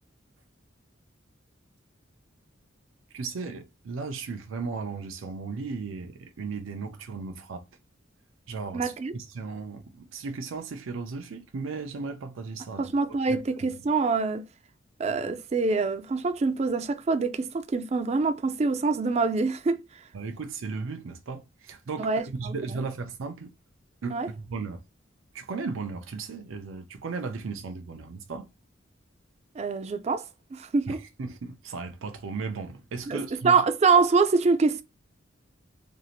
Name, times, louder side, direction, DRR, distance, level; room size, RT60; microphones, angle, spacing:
voice 1, 3.1-7.6 8.5-12.8 13.3-13.4 20.1-23.5 24.0-24.8 25.3-28.5 30.9-33.5, right 4 dB, 90° right, 0.5 m, -36 dB
voice 2, 8.7-9.1 12.8-14.4 15.0-19.8 22.0-22.8 24.1-24.3 29.6-31.0 33.1-34.8, right 4 dB, 35° right, 0.3 m, -25 dB
2.6 x 2.4 x 2.8 m
head